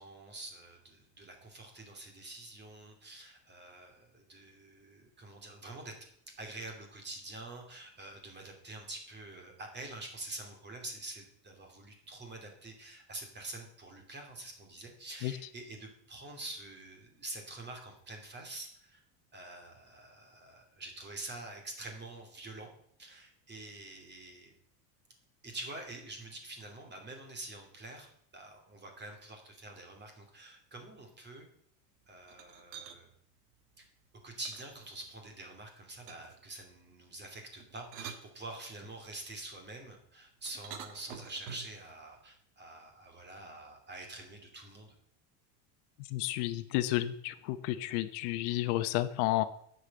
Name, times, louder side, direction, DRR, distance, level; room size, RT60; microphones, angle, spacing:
voice 1, 0.0-5.9 6.4-19.0 19.3-22.7 23.0-24.5 25.4-28.1 28.3-31.5 32.1-33.1 34.2-44.9, right 2 dB, 20° right, 3 dB, 2.9 m, -46 dB
sound 1, 32.3-33.0 34.4-35.4 36.1-36.5 37.6-38.9 40.5-41.8, right 7 dB, 75° right, 1.8 m, -47 dB
voice 2, 46.1-49.4, left 15 dB, 65° left, 12 dB, 1.0 m, -31 dB
10.0 x 6.9 x 7.7 m, 0.68 s
supercardioid pair, 145°, 48 cm